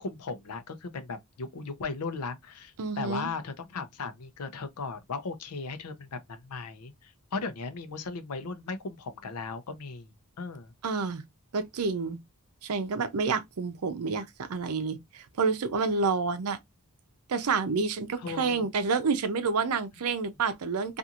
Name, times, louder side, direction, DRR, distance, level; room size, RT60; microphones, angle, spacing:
voice 1, 0.0-10.1 10.4-10.7 18.2-18.7, left 4 dB, 85° left, 0.6 m, -37 dB
voice 2, 2.8-3.3 10.8-11.2 11.5-12.2 12.6-16.6 17.3-21.0, right 4 dB, 80° right, 0.5 m, -29 dB
2.8 x 2.5 x 2.4 m
head